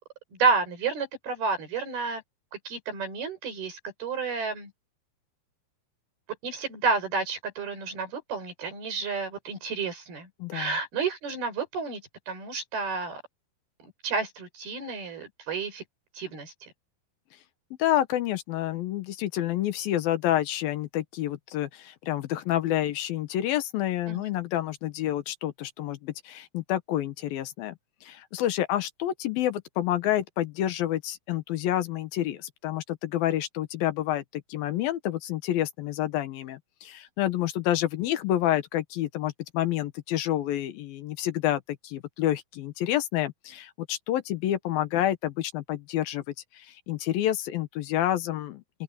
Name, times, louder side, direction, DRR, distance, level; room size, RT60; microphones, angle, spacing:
voice 1, 0.3-2.2 2.7-4.7 6.4-13.2 13.8-15.8 16.1-16.7 24.1-24.3, right 4 dB, 75° right, 7.7 m, -30 dB
voice 2, 10.4-10.7 17.8-27.7 28.0-46.2 46.5-48.6, left 13 dB, 75° left, 2.8 m, -28 dB
open air
omnidirectional pair, 4.4 m